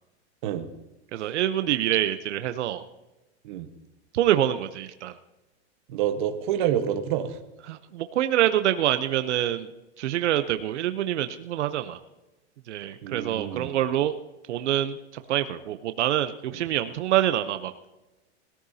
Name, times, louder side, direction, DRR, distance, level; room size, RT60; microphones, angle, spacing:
voice 1, 1.1-2.8 4.1-5.1 7.7-9.7 10.0-12.0 12.7-14.2 14.5-15.0 15.3-17.7, right 12 dB, 85° right, 10 dB, 0.8 m, -25 dB
voice 2, 5.9-7.4 13.0-13.7, right 10 dB, 45° right, 6 dB, 1.3 m, -28 dB
20.5 x 14.0 x 2.8 m, 1.0 s
supercardioid pair, 170°, 34 cm